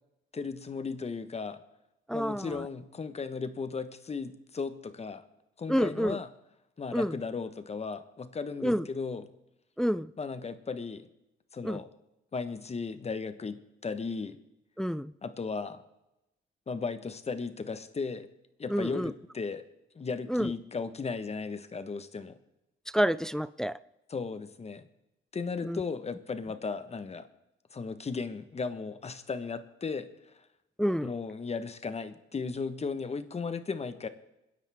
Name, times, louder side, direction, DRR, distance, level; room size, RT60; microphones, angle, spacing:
voice 1, 0.3-1.6 2.1-5.3 5.6-6.3 6.8-9.2 10.2-11.1 11.5-11.9 12.3-14.4 15.2-15.8 16.7-18.3 18.6-19.6 19.9-22.4 24.1-24.9 25.3-27.3 27.7-30.1 31.0-34.1, left 4 dB, 30° left, 1.3 m, -36 dB
voice 2, 2.1-2.7 5.7-6.2 6.9-7.1 8.6-8.9 9.8-10.1 11.6-11.8 14.8-15.1 18.7-19.1 20.3-20.5 22.9-23.8 25.6-25.8 30.8-31.1, equal, 5° left, 0.4 m, -28 dB
26.5 x 10.5 x 3.6 m
cardioid pair, 90°, 20 cm